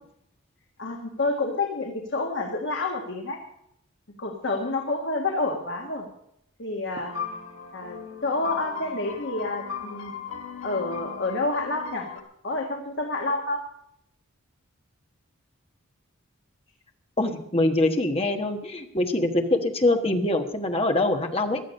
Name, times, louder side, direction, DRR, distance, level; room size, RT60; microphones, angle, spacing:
voice 1, 0.8-3.4 4.2-6.1 6.6-7.2 7.7-10.2 10.6-12.1 12.4-13.6, left 2 dB, 60° left, 1 dB, 1.8 m, -29 dB
sound 1, 7.0-12.2, left 7 dB, 75° left, 2.3 m, -37 dB
voice 2, 17.2-21.6, left 2 dB, 30° left, 4 dB, 1.3 m, -24 dB
16.0 x 11.5 x 5.4 m, 0.74 s
head